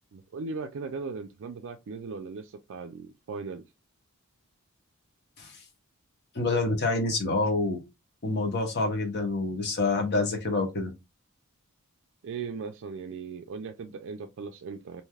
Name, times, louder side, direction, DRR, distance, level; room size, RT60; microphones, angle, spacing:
voice 1, 0.1-3.6 12.2-15.0, right 4 dB, 60° right, 0.4 m, -38 dB
voice 2, 6.3-7.8 8.2-10.9, left 3 dB, 50° left, 1.0 m, -27 dB
3.2 x 2.7 x 2.3 m
head